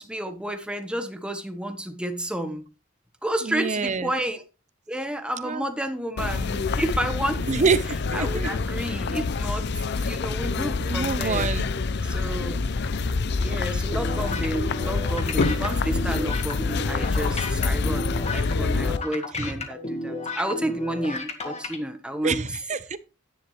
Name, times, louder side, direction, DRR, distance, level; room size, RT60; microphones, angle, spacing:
voice 1, 0.0-2.6 3.2-4.4 4.9-7.6 8.1-9.7 10.0-11.5 12.0-12.6 13.4-22.4, right 1 dB, 5° right, 1.3 m, -31 dB
voice 2, 3.4-4.1 5.4-5.7 7.5-8.5 9.1-9.2 10.8-11.7 19.3-19.5 22.2-23.0, right 4 dB, 35° right, 0.6 m, -26 dB
sound 1, 6.2-19.0, left 4 dB, 55° left, 0.5 m, -26 dB
sound 2, 13.9-21.8, left 2 dB, 30° left, 1.8 m, -33 dB
10.5 x 10.0 x 3.2 m
head